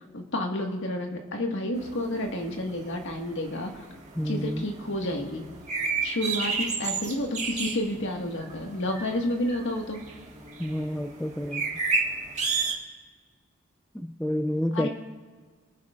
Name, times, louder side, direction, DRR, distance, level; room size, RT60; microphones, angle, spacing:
voice 1, 0.1-3.8 4.2-5.5 6.0-10.0 14.7-14.9, left 1 dB, 60° left, 2 dB, 1.7 m, -30 dB
sound 1, 1.7-12.7, right 4 dB, 35° right, 1.6 m, -33 dB
voice 2, 4.2-4.5 10.6-11.6 14.2-14.9, equal, 5° left, 7 dB, 0.4 m, -28 dB
27.0 x 9.5 x 2.5 m, 1.5 s
head